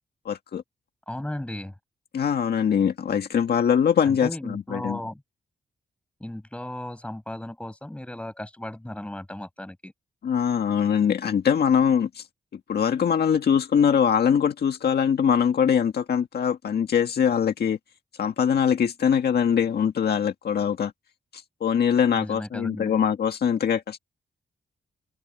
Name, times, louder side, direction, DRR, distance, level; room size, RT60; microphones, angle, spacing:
voice 1, 0.3-0.6 2.1-5.0 10.2-12.2 12.7-17.8 18.2-20.9 21.3-24.0, left 7 dB, 65° left, 1.7 m, -22 dB
voice 2, 1.1-1.7 4.0-5.2 6.2-9.9 22.1-23.0, left 1 dB, 5° left, 6.2 m, -35 dB
wide cardioid pair, 155°, 17 cm